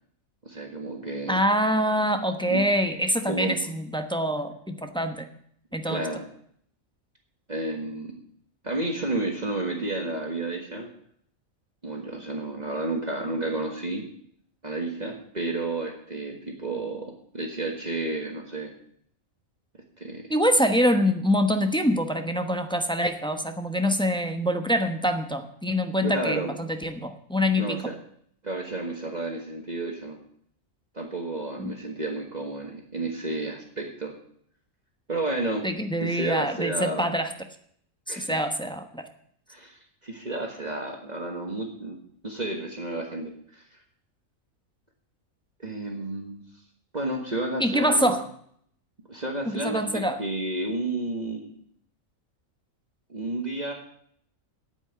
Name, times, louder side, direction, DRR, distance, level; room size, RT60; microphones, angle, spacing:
voice 1, 0.4-1.4 2.5-2.6 3.3-3.6 5.8-6.2 7.5-8.1 8.6-10.9 11.8-14.0 14.6-18.7 20.0-20.3 26.0-26.5 27.6-27.9 28.4-30.2 30.9-34.1 35.1-35.6 36.0-37.1 38.1-38.4 39.5-42.0 42.2-43.8 45.6-46.4 46.9-48.2 49.1-51.5 53.1-53.7, right 2 dB, 30° right, 1 dB, 1.6 m, -31 dB
voice 2, 1.3-5.3 5.7-6.1 20.3-27.8 31.6-31.7 35.6-37.3 38.1-39.0 47.6-48.2 49.5-50.2, equal, 5° left, 6 dB, 0.9 m, -25 dB
8.9 x 8.9 x 8.7 m, 0.65 s
omnidirectional pair, 1.4 m